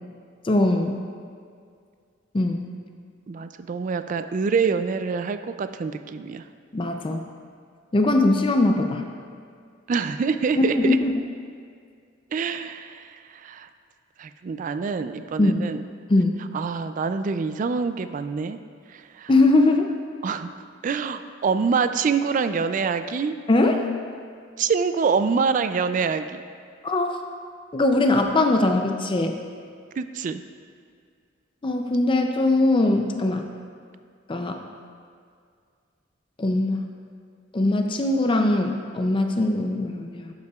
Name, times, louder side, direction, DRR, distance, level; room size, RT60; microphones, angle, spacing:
voice 1, 0.4-1.0 2.3-2.7 6.7-7.2 7.9-9.0 10.6-11.1 15.4-15.7 16.1-16.4 19.3-19.9 23.5-23.8 26.8-27.1 27.7-29.4 31.6-33.5 34.3-34.6 36.4-36.9 37.5-40.3, left 2 dB, 25° left, 4 dB, 0.4 m, -21 dB
voice 2, 3.3-6.4 9.9-11.0 12.3-13.7 14.2-15.8 16.5-18.6 18.9-19.3 20.2-20.5 20.8-23.4 24.6-26.2 30.0-30.4, right 5 dB, 40° right, 10 dB, 0.3 m, -25 dB
11.5 x 8.0 x 2.3 m, 2.2 s
head